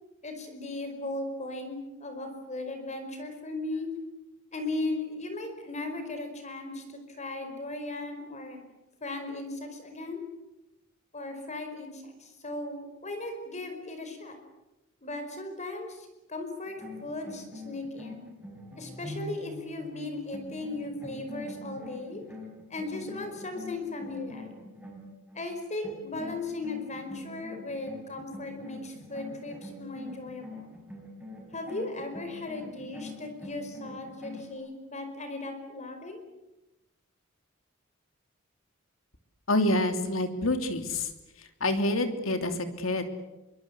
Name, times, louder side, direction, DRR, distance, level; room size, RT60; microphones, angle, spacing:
voice 1, 0.2-3.9 4.5-8.6 9.0-10.2 11.1-14.4 15.0-18.2 18.7-22.2 22.7-24.5 25.3-30.7 31.5-36.2, left 2 dB, 35° left, 6 dB, 5.0 m, -37 dB
sound 1, 16.7-25.5 25.8-34.5, left 1 dB, 10° right, 5.3 m, -44 dB
voice 2, 39.5-41.1 41.4-43.0, left 1 dB, 70° left, 7 dB, 3.1 m, -27 dB
24.5 x 23.5 x 8.4 m, 0.99 s
head